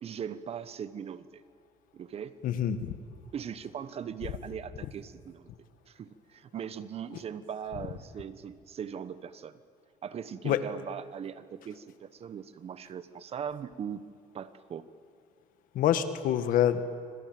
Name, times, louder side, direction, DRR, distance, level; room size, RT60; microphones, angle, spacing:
voice 1, 0.0-1.4 1.9-2.3 3.3-5.5 5.9-9.6 10.0-14.0 14.3-14.8, right 8 dB, 40° right, 14 dB, 1.1 m, -40 dB
voice 2, 2.4-2.9 10.4-10.6 15.7-16.8, left 10 dB, 65° left, 10 dB, 1.8 m, -26 dB
27.0 x 26.0 x 7.8 m, 2.2 s
cardioid pair, 120°, 15 cm